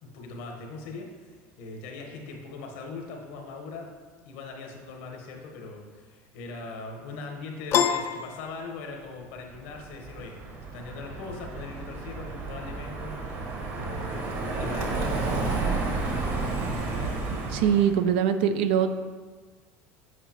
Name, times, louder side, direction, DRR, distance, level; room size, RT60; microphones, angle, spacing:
voice 1, 0.0-3.9 4.2-10.3 10.7-16.7, left 3 dB, 80° left, 2 dB, 1.2 m, -41 dB
Piano, 7.7-9.3, left 8 dB, 50° left, 0.4 m, -27 dB
Car passing by, 9.5-18.0, right 3 dB, 50° right, 1.5 m, -31 dB
voice 2, 17.5-18.9, right 8 dB, 85° right, 9 dB, 0.5 m, -22 dB
8.1 x 4.8 x 3.0 m, 1.4 s
supercardioid pair, 105°, 6 cm